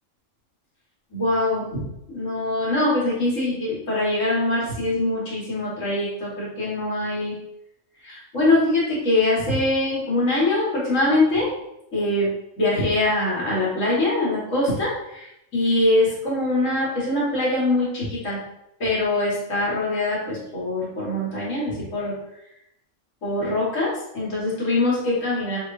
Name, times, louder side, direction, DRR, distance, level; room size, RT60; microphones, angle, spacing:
voice 1, 1.1-7.4 8.0-11.5 11.9-12.3 12.6-18.4 18.8-22.1 23.2-25.6, left 2 dB, 70° left, -6 dB, 2.1 m, -23 dB
6.3 x 3.1 x 2.7 m, 0.83 s
omnidirectional pair, 1.4 m